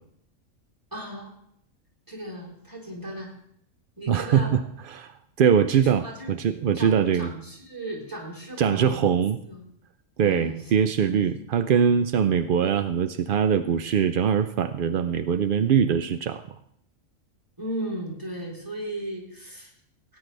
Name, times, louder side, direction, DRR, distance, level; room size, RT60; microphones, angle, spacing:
voice 1, 0.9-1.3 2.1-3.3 4.0-4.5 5.7-6.3 6.7-9.1 9.5-9.6 10.2-10.7 11.0-11.2 17.6-19.7, right 1 dB, 15° right, -2 dB, 3.6 m, -36 dB
voice 2, 4.1-4.6 4.9-5.1 5.4-7.3 8.6-9.4 10.2-16.6, right 7 dB, 65° right, 10 dB, 0.5 m, -22 dB
17.0 x 9.6 x 3.3 m, 0.70 s
omnidirectional pair, 1.4 m